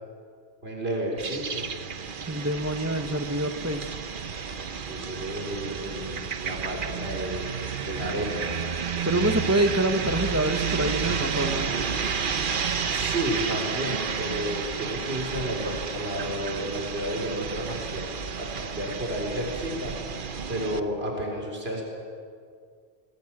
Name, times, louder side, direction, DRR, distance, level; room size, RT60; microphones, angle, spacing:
voice 1, 0.6-1.7 4.8-7.5 7.8-8.4 12.9-20.1 20.5-21.8, equal, 70° right, 0 dB, 4.5 m, -32 dB
sound 1, 1.2-20.8, right 6 dB, 55° right, 1.0 m, -31 dB
voice 2, 2.3-3.9 9.0-11.7, right 1 dB, 15° right, 6 dB, 1.3 m, -26 dB
26.5 x 20.0 x 7.5 m, 2.2 s
omnidirectional pair, 1.1 m